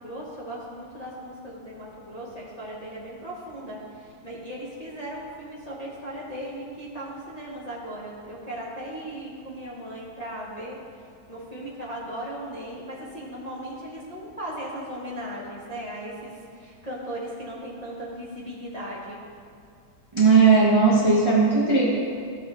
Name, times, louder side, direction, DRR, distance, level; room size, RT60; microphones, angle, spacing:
voice 1, 0.0-19.2, right 1 dB, 30° left, -7 dB, 0.8 m, -37 dB
voice 2, 20.1-21.8, right 4 dB, 25° right, -6 dB, 0.6 m, -17 dB
14.0 x 4.7 x 3.1 m, 2.3 s
omnidirectional pair, 2.3 m